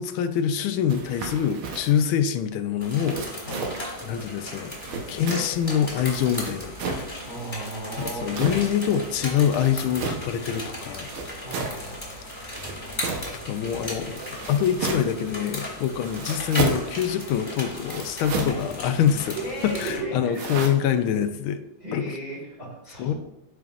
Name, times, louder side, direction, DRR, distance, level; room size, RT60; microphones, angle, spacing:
voice 1, 0.0-3.5 4.0-4.7 5.1-6.7 8.0-11.1 13.5-14.2 14.5-19.4 19.6-21.6 21.9-22.0 23.0-23.1, left 8 dB, 80° left, 9 dB, 1.5 m, -25 dB
sound 1, 0.9-2.0 3.0-3.9 4.7-5.7 6.3-7.1 7.8-8.7 9.5-10.3 11.0-11.8 12.5-13.4 14.2-15.2 16.0-16.9 17.8-18.7 20.3-20.7, right 4 dB, 75° right, 1.9 m, -32 dB
sound 2, 2.8-20.0, left 1 dB, 15° left, 2.3 m, -37 dB
voice 2, 4.8-5.2 7.1-8.3 11.4-12.2 19.3-20.5 21.8-23.1, right 2 dB, 20° right, -6 dB, 2.2 m, -35 dB
12.5 x 5.0 x 2.5 m, 0.93 s
omnidirectional pair, 2.3 m